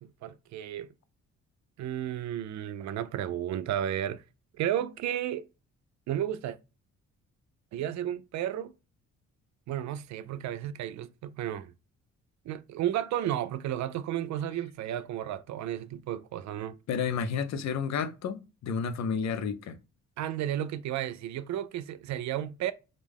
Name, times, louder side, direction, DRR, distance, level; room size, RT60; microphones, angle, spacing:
voice 1, 0.0-0.9 1.8-4.2 4.5-5.4 6.1-6.6 7.7-8.7 9.7-11.7 12.4-16.8 20.2-22.7, right 11 dB, 70° right, 0.4 m, -33 dB
voice 2, 16.9-19.8, left 6 dB, 65° left, 0.6 m, -31 dB
5.1 x 2.0 x 3.4 m
cardioid pair, 90°, 30 cm